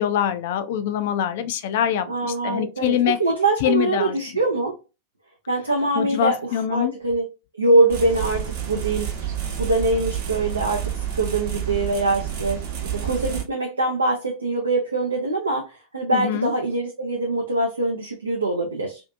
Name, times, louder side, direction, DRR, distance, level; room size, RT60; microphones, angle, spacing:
voice 1, 0.0-3.2 3.6-4.2 5.9-6.9 16.1-16.5, left 10 dB, 55° left, 0.3 m, -24 dB
voice 2, 2.1-4.7 5.5-7.3 7.5-9.1 9.6-19.0, right 2 dB, 80° right, 0.4 m, -23 dB
sound 1, 7.9-13.4, right 10 dB, 55° right, 0.8 m, -29 dB
2.6 x 2.4 x 2.4 m
figure-of-eight pair, 90°, 0 cm